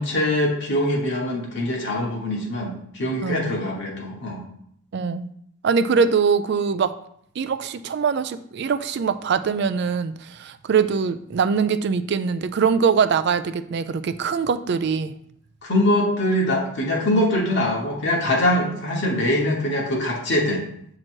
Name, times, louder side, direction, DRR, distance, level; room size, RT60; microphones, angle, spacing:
voice 1, 0.0-4.4 15.6-20.6, left 1 dB, 55° left, -1 dB, 1.0 m, -23 dB
voice 2, 4.9-5.3 5.6-6.9 7.4-15.1 17.1-17.2, right 6 dB, 50° right, 12 dB, 0.3 m, -22 dB
7.6 x 2.9 x 4.5 m, 0.68 s
head